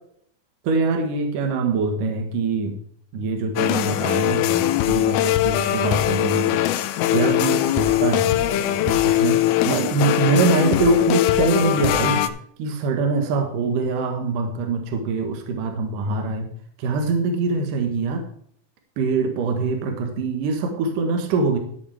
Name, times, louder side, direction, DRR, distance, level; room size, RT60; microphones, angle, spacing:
voice 1, 0.6-2.7 3.1-6.6 7.1-12.2 12.6-16.5 16.8-18.2 19.0-21.6, right 4 dB, 65° right, 4 dB, 2.8 m, -23 dB
sound 1, 3.6-12.3, left 13 dB, 85° left, 2.6 m, -21 dB
13.0 x 8.4 x 3.4 m, 0.63 s
omnidirectional pair, 4.3 m